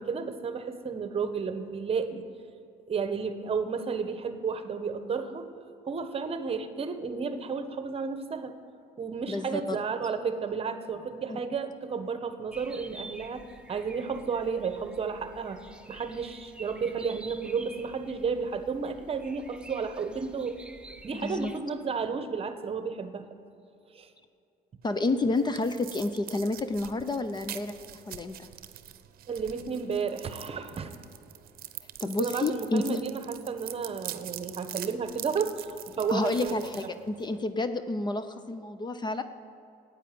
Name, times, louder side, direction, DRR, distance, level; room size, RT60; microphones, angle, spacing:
voice 1, 0.0-2.2 2.9-5.5 5.9-8.6 9.0-15.6 15.9-20.6 21.0-23.3 23.9-24.1 29.3-30.9 32.2-36.7, right 5 dB, 35° right, 9 dB, 1.1 m, -32 dB
voice 2, 9.3-9.8 11.3-11.4 21.2-21.5 24.8-27.7 28.1-28.5 32.0-33.0 36.1-39.2, left 2 dB, 25° left, 10 dB, 0.6 m, -30 dB
sound 1, 12.5-21.6, right 2 dB, 5° right, 0.8 m, -49 dB
sound 2, 24.8-37.5, right 12 dB, 60° right, 0.8 m, -44 dB
13.0 x 9.0 x 9.4 m, 2.6 s
cardioid pair, 110°, 17 cm